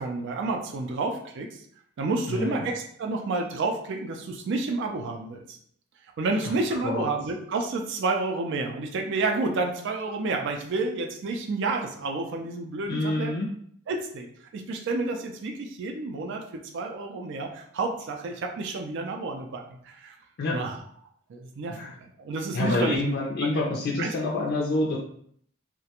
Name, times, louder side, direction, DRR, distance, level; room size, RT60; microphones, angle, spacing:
voice 1, 0.0-1.6 2.0-5.6 6.2-13.3 13.9-14.3 14.5-20.2 20.5-20.8 21.3-23.1 23.4-23.5 24.0-24.3, right 3 dB, 60° right, 3 dB, 0.4 m, -30 dB
voice 2, 12.9-13.5 20.4-20.6 21.7-21.9 22.5-25.0, left 2 dB, 55° left, -2 dB, 0.4 m, -27 dB
2.4 x 2.1 x 2.8 m, 0.63 s
head